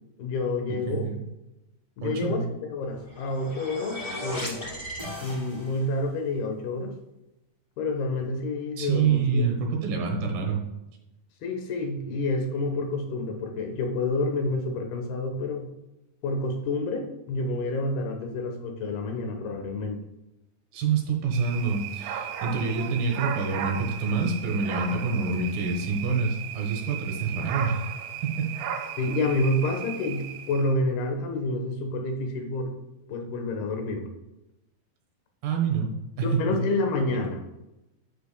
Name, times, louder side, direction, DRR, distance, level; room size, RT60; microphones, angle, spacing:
voice 1, 0.2-1.1 2.0-2.4 2.7-4.7 5.2-6.9 7.8-9.4 11.4-15.7 16.2-20.0 29.0-32.7 33.1-34.1 36.2-37.4, left 2 dB, 80° left, 4 dB, 3.1 m, -28 dB
voice 2, 0.9-1.2 2.0-2.5 8.8-10.6 20.7-27.9 28.2-28.5 35.4-36.6, right 5 dB, 70° right, 2 dB, 2.9 m, -27 dB
sound 1, 2.9-5.9, left 1 dB, 10° left, 2.4 m, -36 dB
sound 2, 21.3-30.7, right 9 dB, 85° right, 2.7 m, -36 dB
10.0 x 7.9 x 2.2 m, 0.95 s
omnidirectional pair, 4.5 m